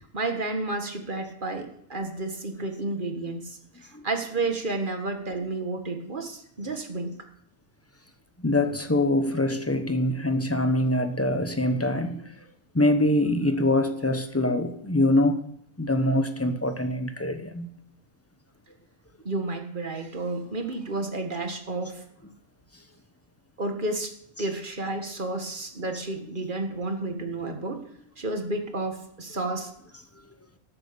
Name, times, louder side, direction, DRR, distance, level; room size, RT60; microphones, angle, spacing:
voice 1, 0.1-7.1 19.2-22.0 23.6-27.9 28.2-29.7, right 2 dB, 40° right, 1.8 m, -31 dB
voice 2, 8.4-12.3 12.7-15.4 15.8-17.7, left 1 dB, 10° left, 0.9 m, -24 dB
13.5 x 8.4 x 6.9 m
omnidirectional pair, 1.3 m